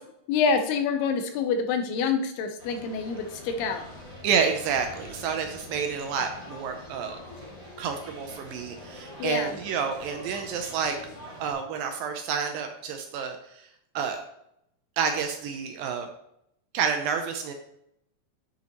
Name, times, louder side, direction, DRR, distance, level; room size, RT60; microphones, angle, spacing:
voice 1, 0.3-3.8 9.2-9.5, left 5 dB, 85° left, 6 dB, 2.8 m, -26 dB
sound 1, 2.6-11.5, left 1 dB, 20° left, 3.3 m, -44 dB
voice 2, 4.2-7.2 7.8-11.0 11.4-13.7 14.0-14.2 15.0-16.1 16.7-17.5, right 6 dB, 80° right, 5 dB, 2.2 m, -29 dB
8.3 x 6.6 x 3.0 m, 0.77 s
omnidirectional pair, 4.5 m